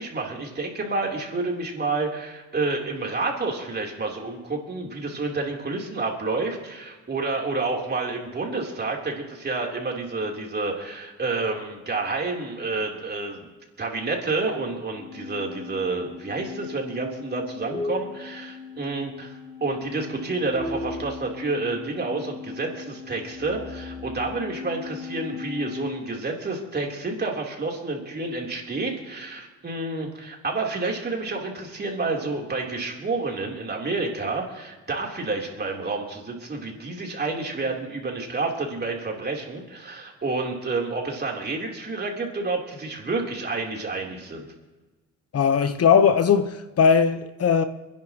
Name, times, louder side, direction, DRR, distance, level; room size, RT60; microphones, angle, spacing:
voice 1, 0.0-13.5 13.8-44.5, right 3 dB, 35° right, 3.5 m, -29 dB
sound 1, 14.9-26.1, left 4 dB, 15° left, 2.8 m, -37 dB
voice 2, 45.3-47.6, left 6 dB, 50° left, 1.0 m, -19 dB
29.0 x 10.5 x 3.0 m
cardioid pair, 90°, 30 cm